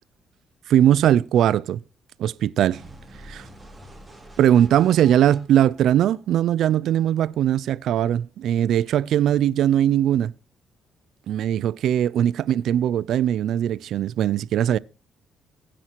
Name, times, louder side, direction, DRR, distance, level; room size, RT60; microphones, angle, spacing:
voice 1, 0.7-1.8 2.2-2.8 3.2-3.4 4.4-10.3 11.3-14.8, right 11 dB, 75° right, 0.5 m, -20 dB
sound 1, 2.7-6.7, right 1 dB, 10° right, 4.0 m, -46 dB
16.5 x 10.0 x 3.0 m
cardioid pair, 90°, 0 cm